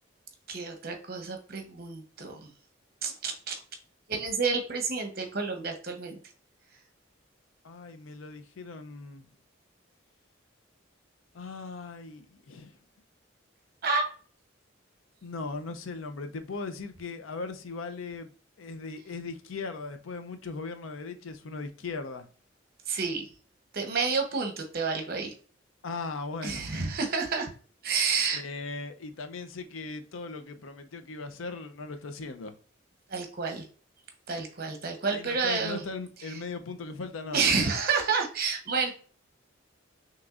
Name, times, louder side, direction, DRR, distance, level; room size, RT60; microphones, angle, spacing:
voice 1, 0.5-2.5 3.0-3.6 4.1-6.2 13.8-14.1 22.9-23.3 23.7-25.3 26.4-27.5 27.8-28.4 33.1-33.6 34.3-35.8 36.2-36.4 37.3-38.9, right 4 dB, 50° right, 0.9 m, -29 dB
voice 2, 7.6-9.3 11.3-12.8 15.2-18.3 18.6-22.3 25.8-26.8 28.3-32.5 35.1-37.6, left 3 dB, 85° left, 0.5 m, -38 dB
5.9 x 3.0 x 2.4 m
head